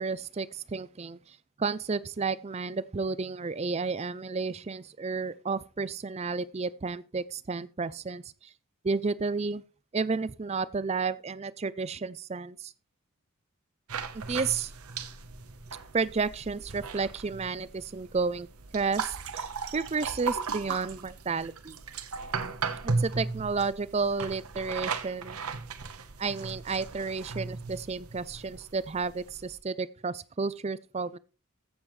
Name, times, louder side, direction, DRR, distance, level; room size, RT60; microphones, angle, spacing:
voice 1, 0.0-8.5 8.8-9.6 9.9-12.7 14.1-14.7 15.9-18.5 18.7-19.5 19.7-21.8 22.8-25.4 26.2-31.2, right 4 dB, 30° right, 0.4 m, -32 dB
Opening a bottle, 13.9-29.6, right 4 dB, 80° right, 1.1 m, -37 dB
15.0 x 7.2 x 3.2 m
head